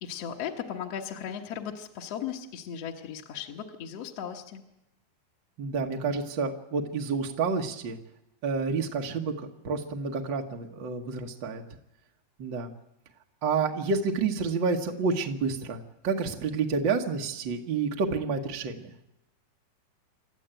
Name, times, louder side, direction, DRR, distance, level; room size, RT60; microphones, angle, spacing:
voice 1, 0.0-4.6, left 8 dB, 55° left, 1 dB, 1.9 m, -37 dB
voice 2, 5.6-8.0 8.4-11.6 12.4-12.7 13.4-18.9, right 4 dB, 60° right, 2 dB, 1.2 m, -29 dB
28.0 x 13.5 x 9.0 m, 0.88 s
omnidirectional pair, 4.4 m